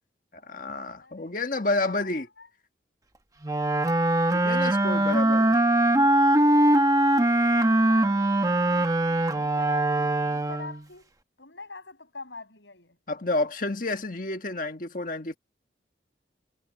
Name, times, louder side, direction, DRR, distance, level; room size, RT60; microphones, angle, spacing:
voice 1, 0.3-2.3 4.3-5.6 13.1-15.4, left 2 dB, 45° left, 1.6 m, -30 dB
voice 2, 1.0-1.4 1.7-2.5 4.3-5.4 6.6-11.1 11.4-13.0, left 3 dB, 85° left, 7.1 m, -44 dB
Wind instrument woodwind instrument, 3.4-10.8, right 1 dB, 20° right, 1.0 m, -22 dB
head